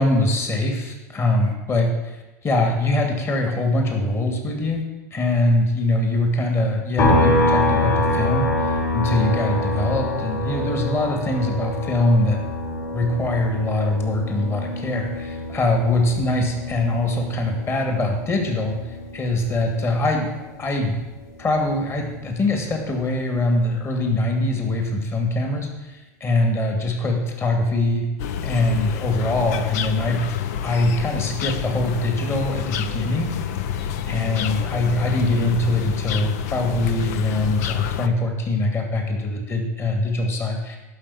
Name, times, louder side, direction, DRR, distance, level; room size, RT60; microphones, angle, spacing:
voice 1, 0.0-4.8 5.1-12.4 12.9-20.3 20.6-20.9 21.4-28.1 28.4-30.2 30.6-33.3 34.0-40.8, left 2 dB, 25° left, 2 dB, 2.6 m, -23 dB
sound 1, 7.0-20.5 20.9-23.1, left 1 dB, 45° left, 5.4 m, -26 dB
sound 2, 28.2-38.1, left 8 dB, 70° left, 0.8 m, -28 dB
12.0 x 6.2 x 8.7 m, 1.1 s
hypercardioid pair, 105°, 9 cm